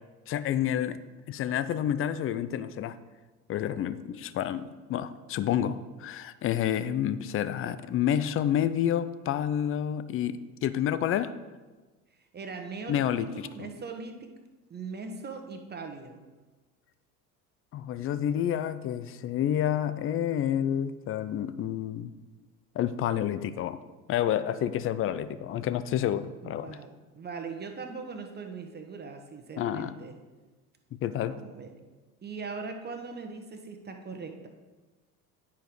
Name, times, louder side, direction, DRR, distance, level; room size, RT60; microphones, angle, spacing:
voice 1, 0.3-1.0 1.3-3.0 3.5-11.3 12.9-13.7 17.7-22.1 22.8-23.8 24.1-26.8 29.6-29.9 31.0-31.4, left 10 dB, 30° left, 13 dB, 0.4 m, -29 dB
voice 2, 12.3-14.4 14.7-16.3 26.4-30.2 31.2-31.8 32.2-34.5, right 4 dB, 20° right, 5 dB, 1.2 m, -40 dB
9.4 x 4.6 x 5.2 m, 1.3 s
hypercardioid pair, 75°, 46 cm